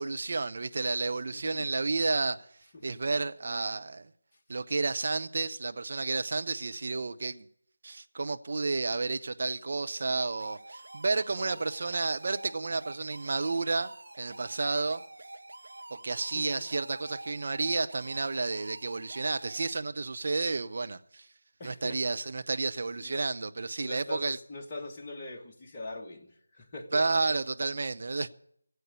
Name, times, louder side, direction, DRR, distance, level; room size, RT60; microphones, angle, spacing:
voice 1, 0.0-2.4 2.8-4.1 4.5-7.5 7.8-15.0 15.9-21.3 21.6-24.4 26.9-28.3, right 3 dB, 40° right, 0.7 m, -31 dB
voice 2, 1.3-1.7 2.7-2.9 11.3-11.7 16.3-16.5 21.6-22.0 23.0-23.3 23.8-27.1, left 2 dB, 20° left, 1.5 m, -42 dB
sound 1, 10.1-19.7, right 2 dB, 55° right, 1.3 m, -47 dB
16.0 x 8.2 x 9.4 m
figure-of-eight pair, 160°, 0 cm